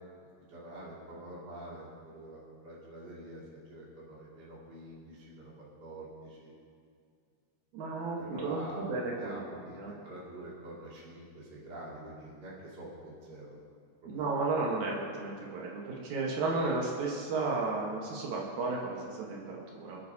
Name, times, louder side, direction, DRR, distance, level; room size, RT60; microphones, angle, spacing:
voice 1, 0.5-5.5 5.8-6.5 8.2-13.6 14.0-14.4, right 1 dB, 35° right, -8 dB, 3.0 m, -46 dB
voice 2, 7.7-9.4 9.7-9.9 14.1-20.0, right 3 dB, 85° right, -3 dB, 2.9 m, -33 dB
26.5 x 8.9 x 2.8 m, 2.2 s
omnidirectional pair, 3.3 m